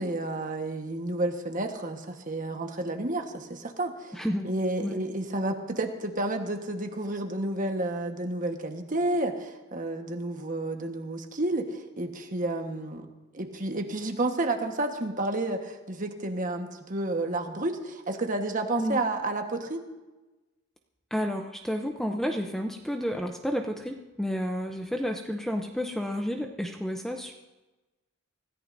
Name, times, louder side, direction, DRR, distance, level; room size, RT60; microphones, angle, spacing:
voice 1, 0.0-4.2 4.4-13.1 13.3-19.8, right 2 dB, 40° right, 4 dB, 1.3 m, -31 dB
voice 2, 4.1-4.5 4.8-5.0 18.8-19.0 21.1-27.3, equal, ahead, 4 dB, 0.6 m, -31 dB
25.0 x 14.5 x 2.7 m, 1.1 s
head